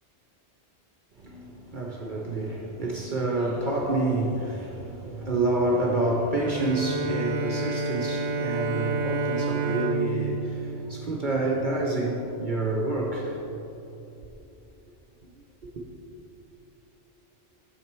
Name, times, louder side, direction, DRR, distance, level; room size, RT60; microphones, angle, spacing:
voice 1, 1.2-13.5 15.7-15.8, right 2 dB, 50° right, 0.9 m, -28 dB
Bowed string instrument, 6.4-11.8, right 3 dB, 75° right, 0.9 m, -30 dB
9.1 x 6.6 x 4.5 m
omnidirectional pair, 1.2 m